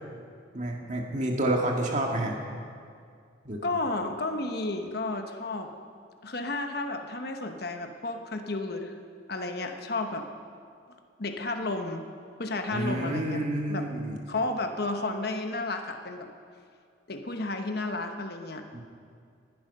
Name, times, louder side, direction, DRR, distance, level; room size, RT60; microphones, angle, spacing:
voice 1, 0.5-2.4 3.5-3.6 12.7-14.2 18.7-18.8, right 1 dB, 40° right, 0 dB, 1.9 m, -29 dB
voice 2, 3.6-5.7 6.2-9.0 9.3-10.3 11.2-12.1 12.4-13.9 14.3-16.3 17.1-18.7, left 2 dB, 55° left, 5 dB, 1.1 m, -32 dB
18.5 x 10.5 x 5.5 m, 2.2 s
head